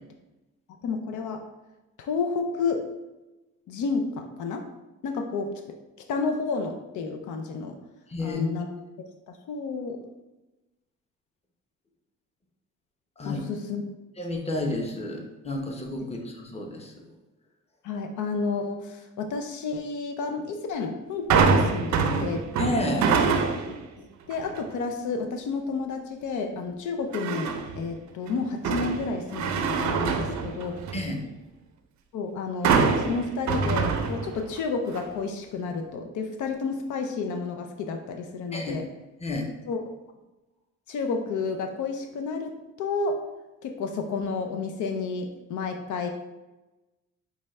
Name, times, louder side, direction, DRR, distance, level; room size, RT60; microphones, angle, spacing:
voice 1, 0.8-1.4 2.0-2.9 3.7-4.7 5.0-5.5 6.1-7.7 8.2-8.7 9.3-10.0 13.2-13.8 17.8-22.5 24.0-30.8 32.1-38.8 39.7-39.8 40.9-43.2 43.6-46.1, left 4 dB, 75° left, 5 dB, 0.5 m, -31 dB
voice 2, 8.1-8.4 13.2-13.4 14.2-16.9 22.6-23.1 30.9-31.2 38.5-38.7 39.2-39.5, left 1 dB, 20° left, 1 dB, 0.8 m, -30 dB
sound 1, 21.3-23.8 24.3-24.7 27.1-27.8 28.3-31.1 32.6-34.6 34.9-35.0, right 5 dB, 70° right, 0.5 m, -25 dB
5.4 x 2.3 x 3.2 m, 1.0 s
cardioid pair, 90°, 30 cm